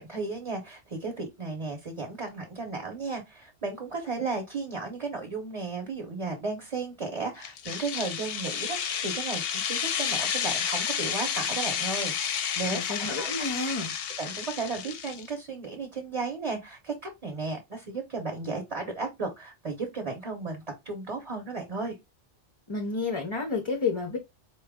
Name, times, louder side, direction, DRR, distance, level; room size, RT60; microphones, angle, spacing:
voice 1, 0.0-12.8 13.2-13.3 14.2-22.0, right 3 dB, 35° right, 0.9 m, -34 dB
sound 1, 7.4-15.3, left 8 dB, 70° left, 0.8 m, -31 dB
voice 2, 12.7-13.9 22.7-24.2, left 4 dB, 35° left, 0.6 m, -30 dB
4.3 x 2.3 x 3.5 m
omnidirectional pair, 1.1 m